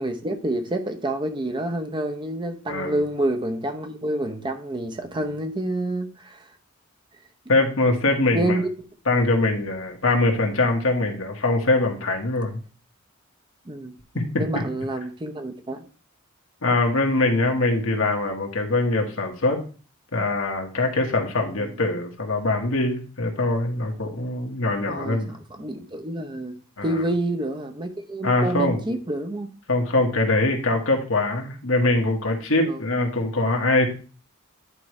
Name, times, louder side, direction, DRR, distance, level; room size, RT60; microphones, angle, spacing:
voice 1, 0.0-6.5 8.3-8.7 13.7-13.9 14.4-15.9 21.5-21.7 24.9-25.2 25.6-29.5 32.7-32.8, right 1 dB, 25° right, 6 dB, 0.7 m, -28 dB
voice 2, 2.7-3.0 7.5-8.6 9.1-12.6 14.1-14.4 16.6-19.6 20.1-25.3 26.8-26.9 28.2-28.8 29.7-33.9, left 2 dB, 80° left, 2 dB, 1.5 m, -23 dB
9.9 x 4.7 x 3.2 m, 0.37 s
head